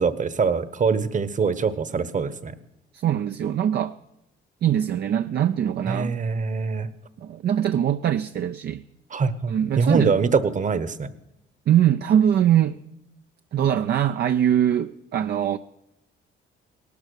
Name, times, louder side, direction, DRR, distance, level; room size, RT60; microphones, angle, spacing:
voice 1, 0.0-2.5 5.9-6.9 9.1-11.1, right 5 dB, 40° right, 1.1 m, -23 dB
voice 2, 2.9-4.0 4.6-6.2 7.2-8.8 9.5-10.1 11.7-12.8 13.5-15.6, right 10 dB, 55° right, 0.5 m, -22 dB
18.0 x 12.0 x 6.4 m
cardioid pair, 90°, 20 cm